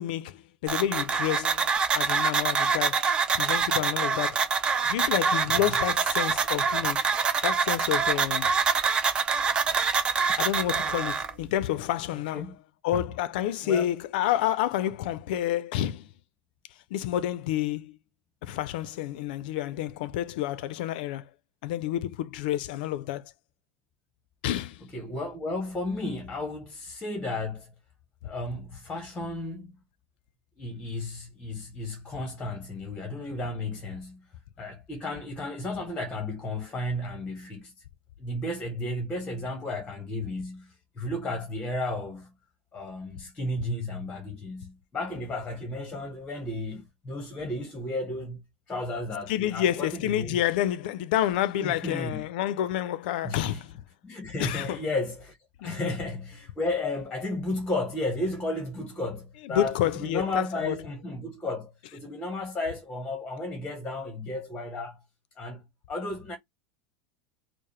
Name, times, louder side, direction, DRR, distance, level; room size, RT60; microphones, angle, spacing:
voice 1, 0.0-3.1 3.3-4.4 4.8-7.0 7.4-8.5 10.4-12.5 12.8-16.1 16.9-18.0 18.4-21.2 21.6-23.2 24.4-24.9 49.3-53.8 54.4-54.8 55.6-55.9 59.4-60.7, left 12 dB, 65° left, 0.4 m, -29 dB
sound 1, 0.7-11.3, right 5 dB, 20° right, 0.5 m, -25 dB
voice 2, 24.9-27.7 28.2-29.7 30.6-34.2 34.6-37.7 38.2-42.3 42.7-48.4 48.7-50.4 51.6-52.2 53.2-53.6 54.0-55.4 55.6-65.0 65.4-65.6 65.9-66.4, left 2 dB, 15° left, 0.9 m, -33 dB
4.6 x 2.0 x 3.1 m
supercardioid pair, 170°, 5 cm